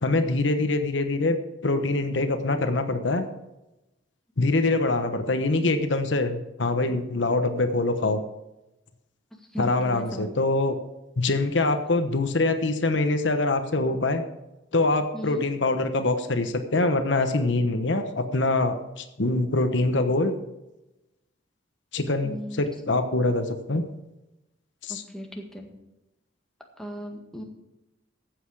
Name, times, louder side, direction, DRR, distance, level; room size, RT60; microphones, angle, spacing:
voice 1, 0.0-3.2 4.4-8.2 9.6-10.8 11.2-14.2 14.7-20.4 21.9-23.8 24.8-25.0, left 2 dB, 70° left, 7 dB, 1.1 m, -24 dB
voice 2, 9.5-10.3 15.1-15.4 22.2-22.6 24.9-25.7 26.8-27.4, equal, 5° left, 1 dB, 1.7 m, -37 dB
14.5 x 8.0 x 4.8 m, 0.97 s
head